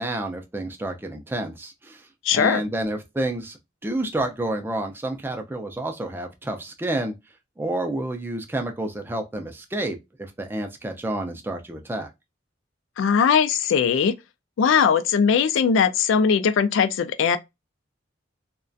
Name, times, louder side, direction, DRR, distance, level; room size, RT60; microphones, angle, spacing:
voice 1, 0.0-2.1 2.3-3.6 3.8-7.1 7.6-12.1, right 1 dB, 10° right, 0.3 m, -29 dB
voice 2, 2.2-2.6 13.0-14.1 14.6-17.4, left 6 dB, 80° left, 0.3 m, -20 dB
2.3 x 2.1 x 2.5 m
head